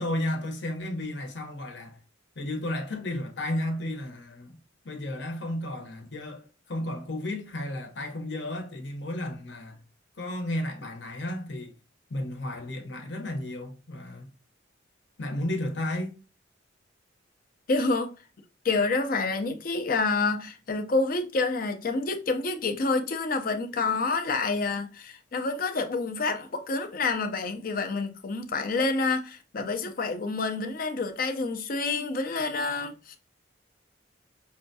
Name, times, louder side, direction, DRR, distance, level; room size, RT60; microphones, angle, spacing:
voice 1, 0.0-2.0 2.4-4.5 4.8-9.8 10.2-11.8 12.1-14.3 15.2-16.2, left 1 dB, 65° left, 0.9 m, -33 dB
voice 2, 17.7-18.1 18.6-33.2, left 3 dB, 45° left, 0.5 m, -28 dB
5.5 x 2.3 x 2.6 m
head